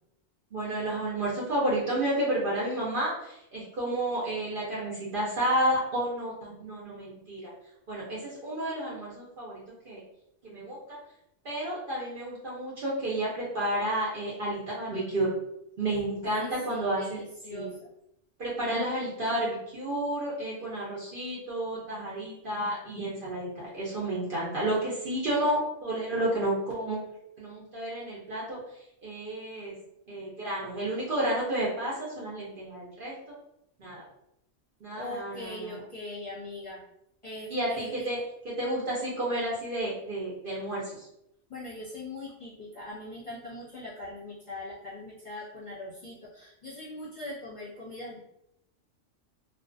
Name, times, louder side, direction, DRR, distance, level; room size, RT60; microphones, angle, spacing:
voice 1, 0.5-7.5 7.9-10.0 10.4-11.0 11.4-15.3 15.8-17.2 17.5-17.7 18.4-27.0 27.4-28.6 29.0-29.7 30.1-33.3 33.8-34.0 34.8-35.8 37.5-38.2 38.4-41.1, right 1 dB, 55° right, -6 dB, 0.7 m, -31 dB
voice 2, 15.9-17.9 35.0-36.8 37.2-38.1 41.5-48.2, left 1 dB, 30° left, -10 dB, 0.8 m, -41 dB
2.4 x 2.3 x 2.5 m, 0.80 s
omnidirectional pair, 1.3 m